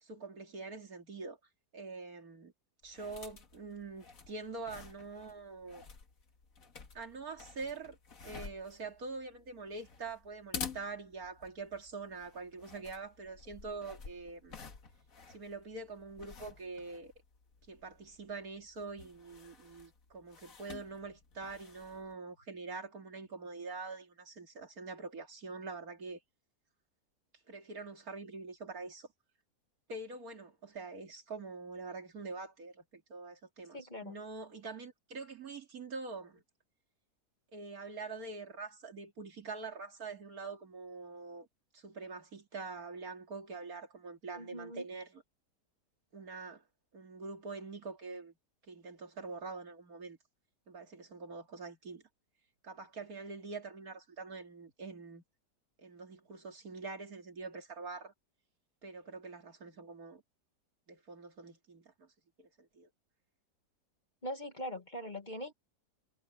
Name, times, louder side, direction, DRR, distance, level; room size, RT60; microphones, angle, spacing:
voice 1, 0.0-1.4 1.7-2.5 2.8-5.8 6.9-8.0 8.2-14.6 15.3-17.1 17.7-26.2 27.5-29.1 29.9-33.8 34.0-36.4 37.5-41.5 41.7-45.2 46.1-46.6 46.9-48.3 48.7-50.2 50.7-52.0 52.6-55.2 55.8-58.1 58.8-60.2 60.9-62.1 62.4-62.9, right 4 dB, 60° right, 2.8 m, -45 dB
sound 1, 2.8-22.2, left 5 dB, 55° left, 2.2 m, -51 dB
voice 2, 33.7-34.2 44.3-44.8 64.2-65.5, left 1 dB, 30° left, 1.8 m, -42 dB
omnidirectional pair, 1.7 m